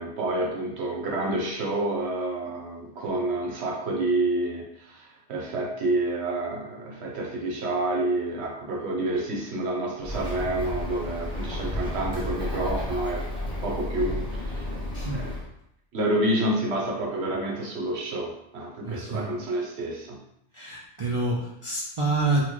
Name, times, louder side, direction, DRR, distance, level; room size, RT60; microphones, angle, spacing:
voice 1, 0.0-13.3 13.6-14.8 15.1-15.3 15.9-20.2, right 2 dB, 70° right, -1 dB, 0.9 m, -29 dB
Bird, 10.0-15.4, left 1 dB, 5° left, 0.7 m, -32 dB
voice 2, 14.9-15.3 18.8-19.3 20.5-22.4, right 2 dB, 50° right, -6 dB, 0.3 m, -27 dB
4.2 x 2.1 x 2.9 m, 0.75 s
omnidirectional pair, 1.2 m